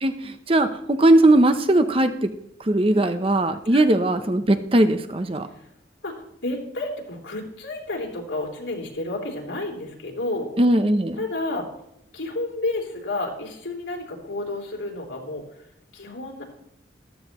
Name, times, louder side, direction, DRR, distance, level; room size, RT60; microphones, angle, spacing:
voice 1, 0.0-2.3 2.6-5.5 10.6-11.2, right 1 dB, 30° right, 9 dB, 0.8 m, -19 dB
voice 2, 6.0-10.5 11.2-11.7 12.1-15.4 15.9-16.4, left 2 dB, 80° left, -1 dB, 3.7 m, -31 dB
14.0 x 12.5 x 3.1 m, 0.77 s
head